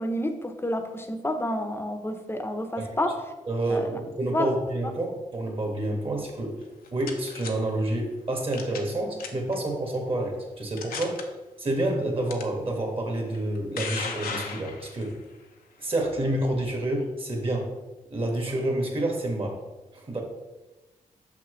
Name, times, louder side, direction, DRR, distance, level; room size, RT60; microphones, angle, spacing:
voice 1, 0.0-3.2 3.7-4.0 4.3-4.5, left 1 dB, 15° left, 7 dB, 0.8 m, -29 dB
voice 2, 3.5-6.6 6.9-11.2 11.6-15.1 15.8-17.7 18.1-19.6 19.9-20.2, right 1 dB, 40° right, 2 dB, 1.8 m, -28 dB
sound 1, 6.6-7.5 8.5-8.9 9.2-9.5 10.2-10.3 10.8-11.2 12.3-12.4 13.3-15.1, left 5 dB, 80° left, 0.8 m, -35 dB
5.9 x 5.8 x 3.2 m, 1.1 s
cardioid pair, 60°, 15 cm